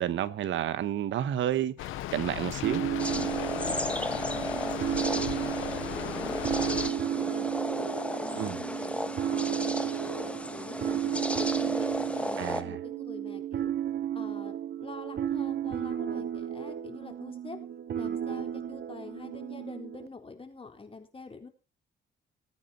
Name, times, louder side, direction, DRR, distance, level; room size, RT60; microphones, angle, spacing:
voice 1, 0.0-2.8 8.3-8.6 12.4-12.8, right 11 dB, 75° right, 1.3 m, -31 dB
Rain, 1.8-6.9, left 14 dB, 85° left, 1.0 m, -37 dB
sound 1, 2.6-20.1, right 10 dB, 55° right, 1.1 m, -33 dB
sound 2, 3.0-12.6, left 1 dB, 5° left, 1.6 m, -34 dB
voice 2, 3.1-5.5 5.9-8.9 9.3-13.7 14.1-14.5 14.8-17.6 18.0-21.5, left 4 dB, 25° left, 4.0 m, -45 dB
19.5 x 9.0 x 4.3 m
cardioid pair, 90°, 20 cm